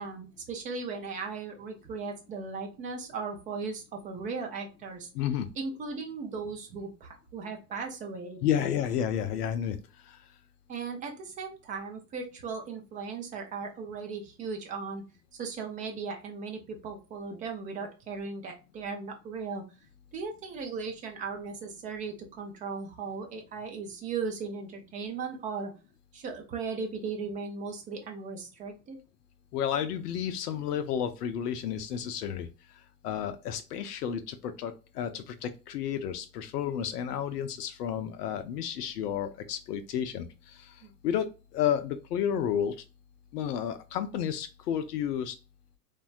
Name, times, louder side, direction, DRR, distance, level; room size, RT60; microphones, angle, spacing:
voice 1, 0.0-5.1 5.6-8.7 10.7-15.0 15.4-19.6 20.1-25.7 26.1-29.0 40.8-40.9, right 4 dB, 20° right, 3 dB, 0.3 m, -37 dB
voice 2, 5.1-5.5 8.4-9.8 10.0-10.2 29.5-32.5 33.0-42.8 43.3-45.4, left 9 dB, 70° left, 8 dB, 0.6 m, -31 dB
3.3 x 2.2 x 2.4 m, 0.31 s
hypercardioid pair, 85°, 50 cm